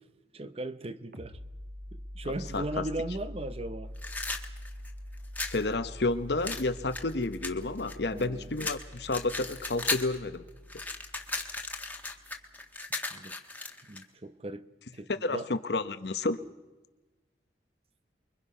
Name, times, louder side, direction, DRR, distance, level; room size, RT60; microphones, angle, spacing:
voice 1, 0.3-1.4 1.9-3.9 8.1-8.5 13.1-13.4 13.9-15.5, right 1 dB, 35° right, 0.8 m, -38 dB
sound 1, 1.1-12.5, equal, 50° right, 1.6 m, -45 dB
voice 2, 2.5-2.8 5.5-10.4 15.2-16.4, left 2 dB, 65° left, 1.0 m, -31 dB
sound 2, 4.0-5.6 6.4-8.2 8.6-10.2 10.5-14.0, left 3 dB, 10° left, 1.5 m, -36 dB
29.0 x 23.0 x 5.6 m
head